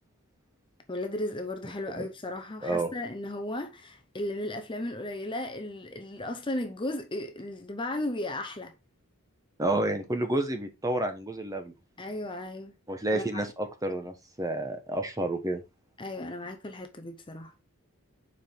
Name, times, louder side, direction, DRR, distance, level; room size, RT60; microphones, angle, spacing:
voice 1, 0.9-8.7 12.0-12.7 13.1-13.4 16.0-17.5, left 1 dB, 20° left, 0.7 m, -35 dB
voice 2, 9.6-11.7 12.9-15.6, right 1 dB, 15° right, 1.1 m, -30 dB
6.9 x 4.9 x 3.6 m
head